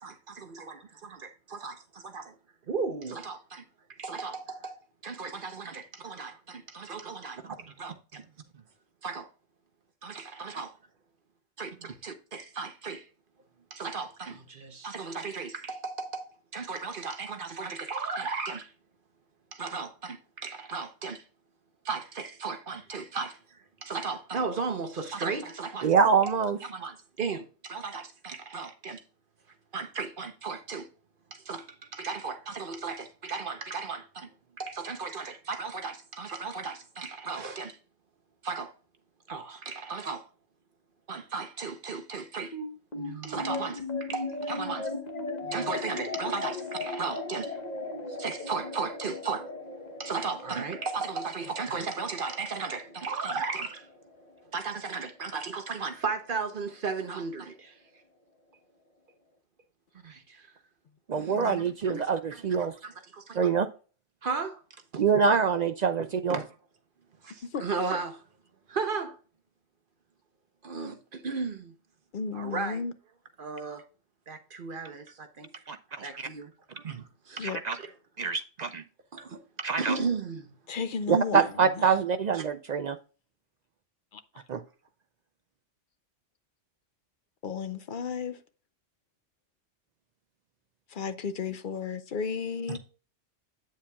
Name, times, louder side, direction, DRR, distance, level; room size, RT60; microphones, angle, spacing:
voice 1, 0.0-2.3 2.7-3.6 4.0-8.2 9.0-9.3 10.0-10.8 11.6-13.1 13.7-18.7 19.5-21.3 21.8-25.9 26.3-26.4 26.7-29.0 29.7-30.9 31.3-34.3 34.6-37.8 38.4-38.7 39.3-40.3 41.1-42.6 42.9-44.9 45.4-47.6 48.1-49.5 50.0-53.9 54.5-57.8 60.0-60.5 61.1-61.5 61.8-62.0 62.6-63.5 64.2-64.6 64.9-65.0 66.3-66.5 67.2-68.2 68.7-69.2 70.6-71.7 72.3-72.8 73.4-73.8 74.3-75.5 76.0-77.9 79.1-79.4 79.8-80.5 81.1-81.4 82.3-82.4 92.7-92.8, right 4 dB, 50° right, 0.9 m, -35 dB
voice 2, 25.8-26.6 61.1-62.7 63.4-63.7 65.0-66.4 75.7-76.3 77.4-77.8 78.2-78.8 79.6-80.0 81.1-83.0 84.5-84.6, right 6 dB, 70° right, 0.4 m, -25 dB
sound 1, 42.5-55.1, left 3 dB, 40° left, 1.0 m, -38 dB
voice 3, 61.3-62.1 67.5-67.6 72.1-72.9 77.4-77.6 80.7-81.4 84.1-84.2 87.4-88.4 90.9-92.8, left 5 dB, 55° left, 0.6 m, -34 dB
8.5 x 7.3 x 2.3 m
omnidirectional pair, 1.2 m